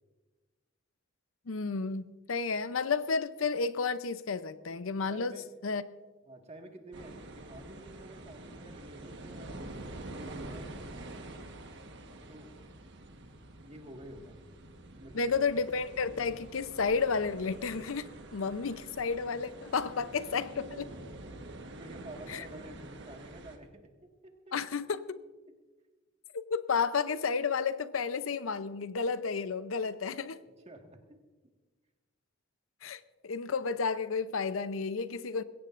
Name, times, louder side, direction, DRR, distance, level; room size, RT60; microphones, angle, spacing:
voice 1, 1.5-2.0 2.3-5.3 5.6-5.8 15.1-20.8 22.3-22.4 24.5-25.2 26.3-30.4 32.8-35.4, left 5 dB, 85° left, 0.7 m, -32 dB
voice 2, 5.1-5.5 6.2-10.8 12.3-12.5 13.6-14.4 15.0-15.3 21.7-23.9 24.2-24.5 30.6-31.2, right 1 dB, 35° right, 1.7 m, -50 dB
sound 1, 6.9-23.6, right 1 dB, 60° right, 1.3 m, -47 dB
21.0 x 17.0 x 2.5 m
head